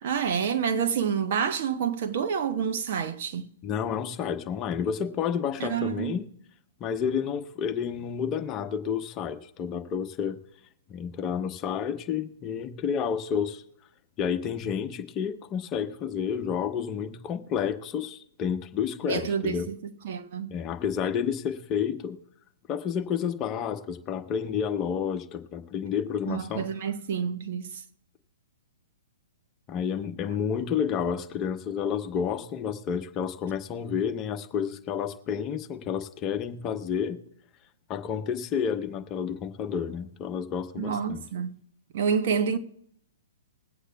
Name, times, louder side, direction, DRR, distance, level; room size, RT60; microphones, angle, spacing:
voice 1, 0.0-3.5 5.6-6.1 19.1-20.6 26.3-27.8 40.7-41.6 41.9-42.6, right 7 dB, 55° right, 1.0 m, -28 dB
voice 2, 3.6-6.3 6.8-10.4 10.9-13.6 14.2-19.7 20.5-22.2 22.7-26.7 29.7-37.2 37.9-41.2, left 7 dB, 30° left, 0.9 m, -30 dB
21.0 x 8.2 x 2.3 m
hypercardioid pair, 120°, 0 cm